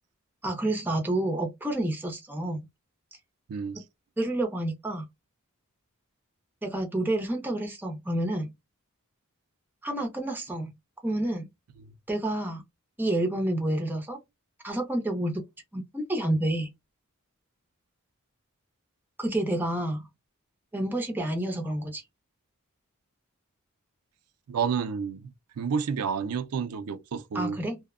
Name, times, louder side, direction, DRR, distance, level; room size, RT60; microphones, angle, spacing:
voice 1, 0.4-2.6 4.2-5.1 6.6-8.5 9.8-10.7 11.0-11.5 12.1-12.6 13.0-14.2 14.6-15.4 15.7-16.7 19.2-20.0 20.7-22.0 27.3-27.8, right 1 dB, 10° right, 0.6 m, -29 dB
voice 2, 3.5-3.8 11.8-11.9 24.5-25.3 25.6-27.6, right 6 dB, 90° right, 0.4 m, -30 dB
2.7 x 2.1 x 2.4 m
head